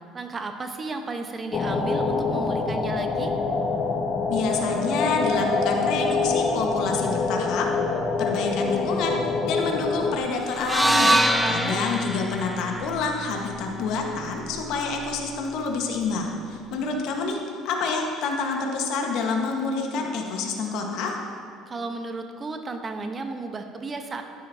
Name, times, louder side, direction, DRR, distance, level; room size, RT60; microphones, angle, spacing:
voice 1, 0.1-3.3 11.4-11.8 21.7-24.2, right 3 dB, 30° right, 6 dB, 1.0 m, -33 dB
sound 1, 1.5-10.2, left 4 dB, 40° left, 1.1 m, -25 dB
voice 2, 4.3-7.7 8.2-11.2 11.5-17.4 17.6-21.2, left 4 dB, 70° left, 1 dB, 1.4 m, -28 dB
sound 2, 10.6-14.8, right 1 dB, 5° right, 0.6 m, -25 dB
12.0 x 10.5 x 2.8 m, 2.3 s
supercardioid pair, 75°, 0 cm